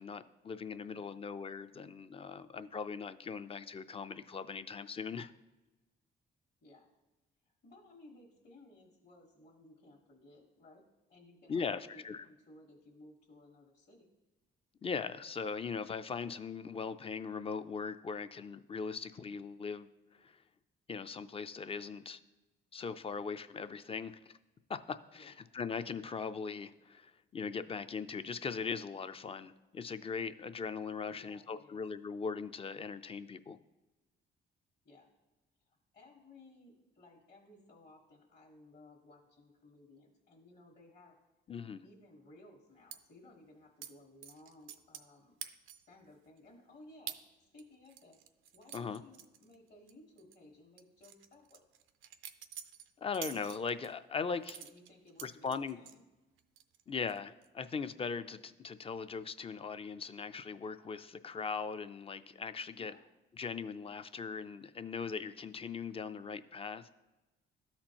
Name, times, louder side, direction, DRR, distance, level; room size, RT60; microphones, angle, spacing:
voice 1, 0.0-5.3 11.5-12.2 14.8-20.4 20.9-22.2 22.7-24.3 24.7-33.6 41.5-41.9 48.7-49.0 53.0-54.6 55.2-55.8 56.9-62.9 63.4-66.9, left 5 dB, 30° left, 11 dB, 0.4 m, -40 dB
voice 2, 0.9-1.3 6.6-6.9 7.4-10.8 11.1-14.1 25.1-25.3 31.1-31.8 34.8-35.1 35.7-41.1 41.8-45.4 45.7-48.2 48.5-51.6 54.5-56.0 62.8-63.1, left 2 dB, 55° left, -4 dB, 1.4 m, -59 dB
sound 1, 42.9-43.0 43.8-43.9 44.2-45.1 45.4-45.9 46.4-46.5 47.1-47.2 47.6-49.9 50.2-50.4 50.8-53.9 54.4-56.0 56.4-56.8 57.1-57.5, right 10 dB, 85° right, 0.5 m, -47 dB
12.5 x 4.3 x 2.9 m, 1.1 s
cardioid pair, 90°, 20 cm